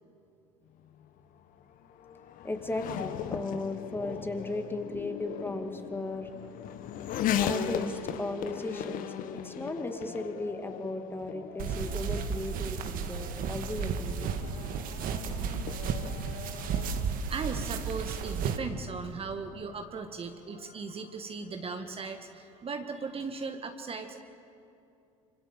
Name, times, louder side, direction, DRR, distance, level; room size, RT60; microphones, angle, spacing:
Race car auto racing / Accelerating revving vroom, 0.8-17.1, left 9 dB, 50° left, 1.5 m, -38 dB
voice 1, 2.4-6.3 7.4-9.1 9.4-14.3, left 2 dB, 10° left, 5 dB, 2.6 m, -36 dB
sound 1, 11.6-18.6, right 6 dB, 50° right, 1.9 m, -33 dB
voice 2, 16.7-24.2, right 4 dB, 30° right, 6 dB, 1.8 m, -38 dB
26.0 x 25.5 x 7.5 m, 2.7 s
hypercardioid pair, 65°, 18 cm